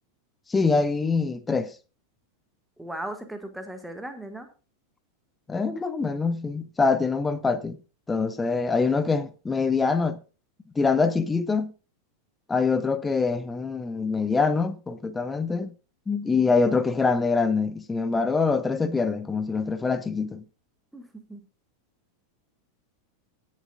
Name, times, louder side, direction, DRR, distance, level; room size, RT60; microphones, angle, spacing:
voice 1, 0.5-1.7 5.5-7.8 8.1-10.2 10.8-11.7 12.5-15.7 16.1-20.4, left 4 dB, 15° left, 0.7 m, -24 dB
voice 2, 2.8-4.5 20.9-21.4, right 1 dB, 5° right, 1.8 m, -37 dB
19.5 x 7.4 x 2.5 m
figure-of-eight pair, 90°, 0 cm